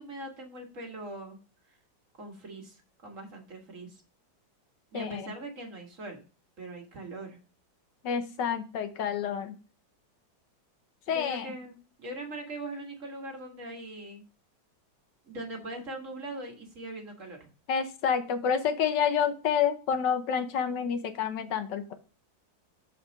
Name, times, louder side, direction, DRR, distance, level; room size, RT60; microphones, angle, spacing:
voice 1, 0.0-1.4 1.7-1.8 2.2-4.0 4.9-6.2 6.6-7.4 11.1-14.2 15.3-17.4, right 2 dB, 45° right, 2 dB, 1.7 m, -41 dB
voice 2, 8.0-9.6 11.1-11.5 17.7-21.9, left 7 dB, 75° left, 9 dB, 1.5 m, -28 dB
6.9 x 4.2 x 5.1 m, 0.34 s
omnidirectional pair, 2.0 m